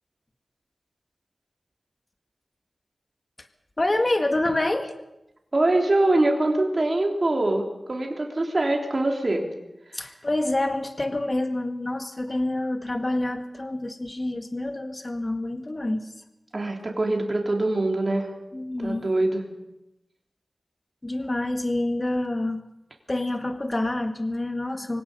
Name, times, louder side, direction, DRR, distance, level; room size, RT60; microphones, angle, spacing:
voice 1, 3.8-4.9 9.9-16.1 18.5-19.0 21.0-22.6 23.1-25.0, left 1 dB, 30° left, 7 dB, 1.8 m, -27 dB
voice 2, 5.5-9.4 16.5-18.3 18.8-19.4, right 2 dB, 40° right, 2 dB, 3.2 m, -23 dB
24.0 x 17.5 x 6.8 m, 0.91 s
wide cardioid pair, 80°, 0 cm